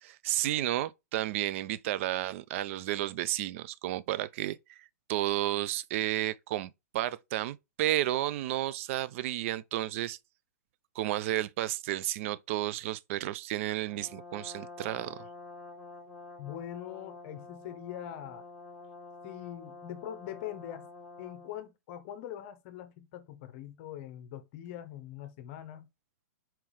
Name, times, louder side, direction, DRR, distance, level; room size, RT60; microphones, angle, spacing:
voice 1, 0.0-10.2 11.0-15.2, right 14 dB, 50° right, 0.4 m, -32 dB
Brass instrument, 13.9-21.6, left 3 dB, ahead, 1.5 m, -48 dB
voice 2, 16.4-18.4 19.2-20.9 21.2-25.9, left 11 dB, 45° left, 0.7 m, -42 dB
4.4 x 3.7 x 3.1 m
hypercardioid pair, 125°, 9 cm